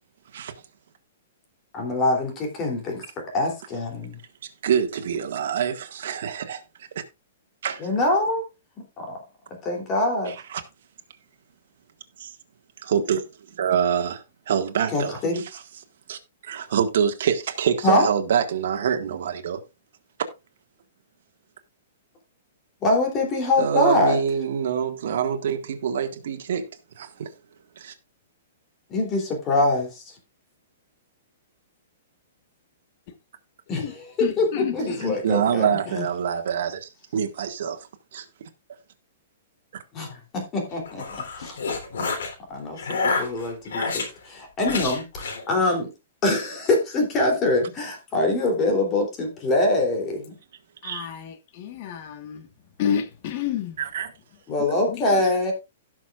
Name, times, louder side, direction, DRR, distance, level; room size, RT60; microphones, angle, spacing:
voice 1, 1.7-4.2 7.8-8.4 8.8-9.2 9.6-10.3 14.9-15.4 17.8-18.1 22.8-24.2 28.9-30.1 33.7-35.7 39.9-41.1 41.4-41.6 42.5-45.9 46.2-50.3 54.5-55.5, left 2 dB, 20° left, 3.2 m, -24 dB
voice 2, 4.6-6.6 6.9-7.0 7.6-7.8 10.3-10.6 12.2-12.3 12.8-15.6 16.1-19.6 23.6-26.7 27.0-27.3 27.7-27.9 35.0-38.2 43.1-43.2 50.8-51.1 53.8-54.1, right 8 dB, 65° right, 1.7 m, -26 dB
voice 3, 34.2-35.4 36.0-36.1 50.8-52.5 52.8-53.8 54.6-55.2, left 9 dB, 45° left, 1.4 m, -30 dB
sound 1, 40.7-42.3 42.8-44.1 44.6-45.4, left 4 dB, 80° left, 3.5 m, -28 dB
16.5 x 6.3 x 2.5 m
hypercardioid pair, 155°, 0 cm